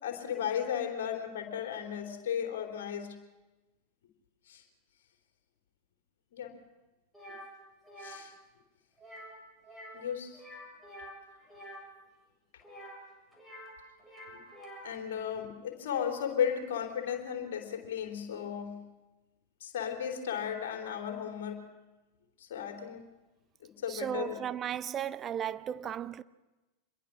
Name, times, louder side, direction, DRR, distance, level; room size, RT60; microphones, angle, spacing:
voice 1, 0.0-3.2 4.5-4.6 6.3-6.5 8.0-8.3 9.9-10.4 14.8-18.8 19.6-21.7 22.5-23.0 23.6-24.4, left 8 dB, 55° left, 3.6 m, -35 dB
sound 1, 7.1-7.5 7.8-8.2 9.0-9.4 9.6-10.0 10.3-11.8 12.6-13.7 14.0-15.0, equal, 5° right, 6.9 m, -48 dB
voice 2, 23.9-26.2, right 9 dB, 25° right, 0.7 m, -35 dB
26.0 x 22.0 x 6.3 m
figure-of-eight pair, 90°, 0 cm